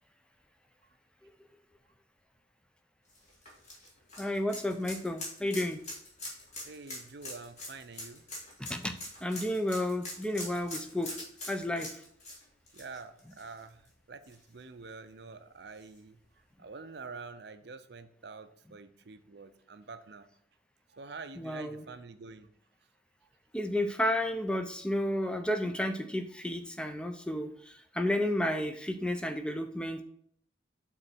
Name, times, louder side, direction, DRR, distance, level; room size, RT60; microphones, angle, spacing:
sound 1, 3.1-13.9 14.2-14.3 15.8-15.9, left 1 dB, 35° left, 2.2 m, -43 dB
voice 1, 4.2-5.8 8.6-11.1 11.5-12.0 21.4-21.9 23.5-30.0, left 1 dB, 5° left, 6 dB, 0.5 m, -32 dB
voice 2, 6.6-8.2 12.7-16.2 16.6-20.3 20.9-22.5, right 4 dB, 55° right, 10 dB, 0.6 m, -47 dB
6.6 x 3.9 x 6.0 m, 0.67 s
head